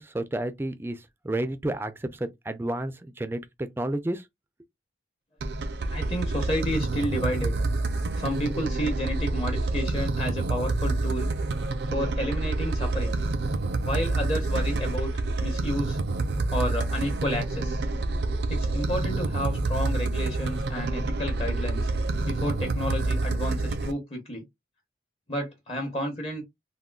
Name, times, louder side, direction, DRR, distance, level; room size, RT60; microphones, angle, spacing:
voice 1, 0.0-4.3, right 1 dB, 15° right, 0.3 m, -31 dB
sound 1, 5.4-23.9, right 2 dB, 75° right, 0.4 m, -27 dB
voice 2, 5.9-7.6 8.2-11.3 11.9-13.2 13.8-15.1 15.4-16.0 16.5-17.8 18.5-21.9 22.2-24.4 25.3-26.4, equal, 35° left, 0.8 m, -31 dB
3.6 x 2.2 x 2.3 m
head